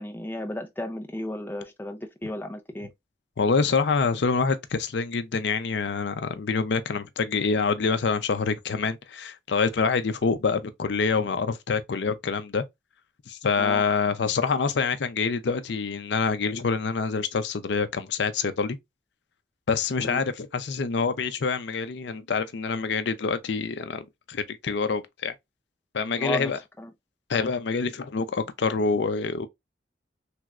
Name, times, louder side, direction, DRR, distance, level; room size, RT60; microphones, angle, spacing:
voice 1, 0.0-2.9 13.6-13.8 20.0-20.2 26.2-26.9, left 1 dB, 10° left, 0.4 m, -34 dB
voice 2, 3.4-12.6 13.3-18.8 19.7-25.3 25.9-26.6 27.3-29.5, left 5 dB, 75° left, 0.5 m, -26 dB
3.3 x 3.0 x 2.4 m
head